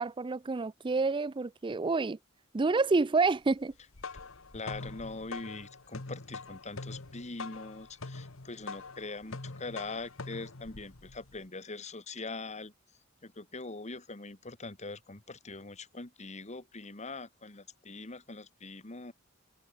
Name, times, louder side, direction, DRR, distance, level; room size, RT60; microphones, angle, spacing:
voice 1, 0.0-2.2 2.5-3.7, right 3 dB, 25° right, 0.4 m, -28 dB
sound 1, 3.7-11.4, left 3 dB, 70° left, 1.5 m, -44 dB
voice 2, 4.5-12.7 13.2-19.1, left 3 dB, 35° left, 2.0 m, -42 dB
head